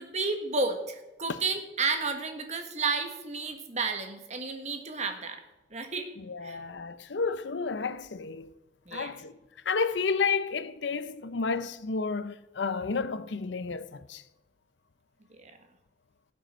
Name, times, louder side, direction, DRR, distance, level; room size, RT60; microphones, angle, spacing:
voice 1, 0.0-5.4 5.7-6.1 6.4-6.6 8.9-9.1 15.3-15.5, right 4 dB, 40° right, 1.5 m, -32 dB
voice 2, 6.2-8.5 8.9-9.4 9.6-14.2, left 4 dB, 80° left, 0.7 m, -31 dB
17.0 x 7.8 x 4.4 m
head